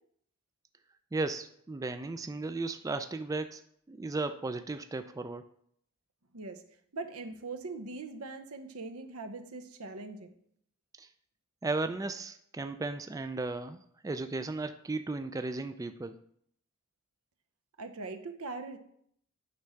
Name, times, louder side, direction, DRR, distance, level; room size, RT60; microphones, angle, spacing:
voice 1, 1.1-3.6 3.9-5.4 11.0-11.1 11.6-13.8 14.0-16.1, right 3 dB, 15° right, 9 dB, 0.3 m, -35 dB
voice 2, 6.9-10.3 17.8-18.8, right 3 dB, 85° right, 8 dB, 0.8 m, -41 dB
9.5 x 3.6 x 5.7 m, 0.68 s
head